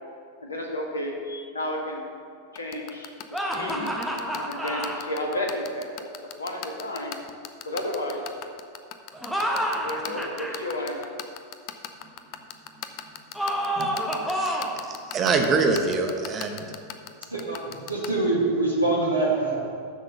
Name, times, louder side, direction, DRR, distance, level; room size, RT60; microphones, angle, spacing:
voice 1, 0.4-2.0 2.5-3.9 4.4-6.1 6.4-7.2 7.6-8.2 9.6-11.0, left 1 dB, 75° left, 0 dB, 1.5 m, -32 dB
sound 1, 2.6-18.1, left 13 dB, 40° left, 0.6 m, -36 dB
sound 2, 3.3-5.0 9.1-10.6 13.3-14.8, equal, ahead, 1.2 m, -28 dB
voice 2, 14.3-16.6, right 4 dB, 25° right, 4 dB, 1.0 m, -25 dB
voice 3, 17.3-19.6, right 2 dB, 80° right, -3 dB, 1.4 m, -24 dB
7.2 x 6.4 x 6.9 m, 2.2 s
figure-of-eight pair, 90°, 0 cm